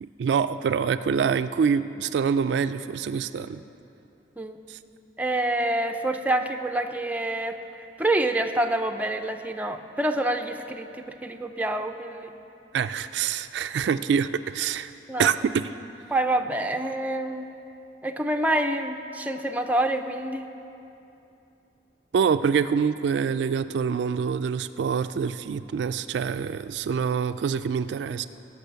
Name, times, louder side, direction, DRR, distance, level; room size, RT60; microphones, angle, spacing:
voice 1, 0.0-3.6 4.7-4.8 12.7-14.9 15.2-15.7 22.1-28.3, right 6 dB, 65° right, 11 dB, 0.3 m, -25 dB
voice 2, 5.2-7.6 8.0-12.3 15.1-15.3 16.1-17.5 18.0-20.5, right 1 dB, 10° right, 5 dB, 0.5 m, -27 dB
18.0 x 6.0 x 6.9 m, 2.8 s
head